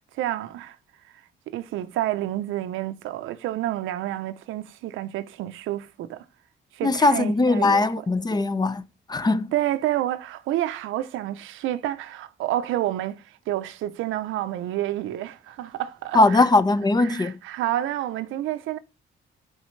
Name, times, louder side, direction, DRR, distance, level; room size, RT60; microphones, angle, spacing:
voice 1, 0.1-0.8 1.5-6.2 6.7-7.8 8.3-8.4 9.2-16.4 17.0-18.8, right 13 dB, 90° right, 0.6 m, -29 dB
voice 2, 6.8-8.8 9.1-9.5 16.1-17.4, left 3 dB, 20° left, 0.5 m, -20 dB
7.3 x 5.1 x 3.2 m
cardioid pair, 90°, 20 cm